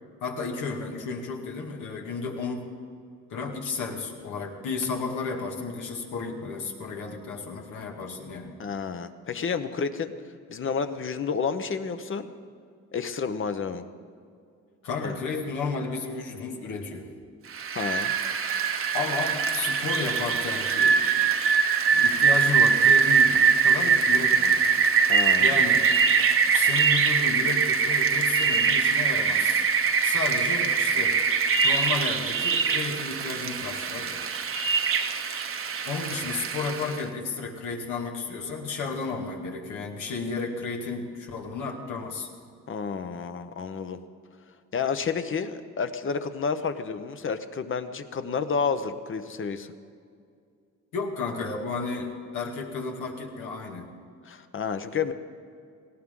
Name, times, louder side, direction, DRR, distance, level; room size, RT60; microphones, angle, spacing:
voice 1, 0.2-2.7 3.3-8.5 14.8-17.1 18.9-21.0 21.9-24.6 25.4-25.9 26.5-29.6 30.0-31.2 31.6-34.2 35.9-42.3 50.9-53.9, left 4 dB, 80° left, 1 dB, 2.2 m, -32 dB
voice 2, 8.6-10.1 10.5-12.3 12.9-13.8 15.0-15.1 17.7-18.1 25.1-25.6 42.7-44.0 44.7-49.7 54.2-55.1, left 5 dB, 40° left, 10 dB, 1.0 m, -30 dB
Rain, 17.5-37.0, right 6 dB, 45° right, 1.0 m, -23 dB
18.5 x 17.0 x 3.8 m, 2.3 s
cardioid pair, 90°, 30 cm